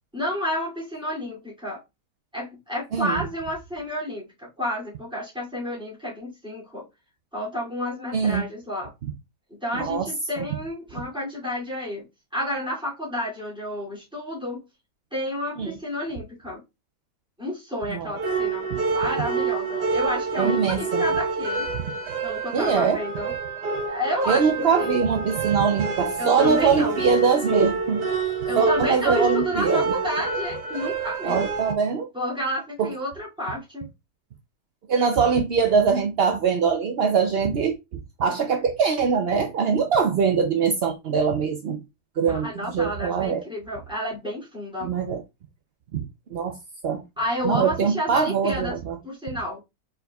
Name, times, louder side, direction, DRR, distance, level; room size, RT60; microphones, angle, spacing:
voice 1, 0.1-1.8 2.3-6.9 7.3-8.9 9.6-12.0 12.3-14.6 15.1-16.6 17.4-18.6 18.9-21.7 22.2-23.3 23.9-24.5 24.8-24.9 26.2-27.0 28.4-31.4 32.1-33.9 42.3-44.9 47.2-48.8 49.0-49.6, equal, 5° right, 2.5 m, -30 dB
voice 2, 2.9-3.2 8.1-8.5 9.7-10.1 15.6-15.8 17.9-18.1 20.4-21.0 22.5-23.0 24.3-28.1 28.6-29.9 31.2-32.1 32.8-32.9 34.9-37.7 38.2-41.8 42.2-43.4 44.8-45.2 45.9-46.0 46.3-46.5 46.8-47.0 47.4-49.0, right 6 dB, 65° right, 0.6 m, -22 dB
sound 1, 18.2-31.7, right 4 dB, 90° right, 1.6 m, -27 dB
5.0 x 4.6 x 2.3 m
omnidirectional pair, 1.7 m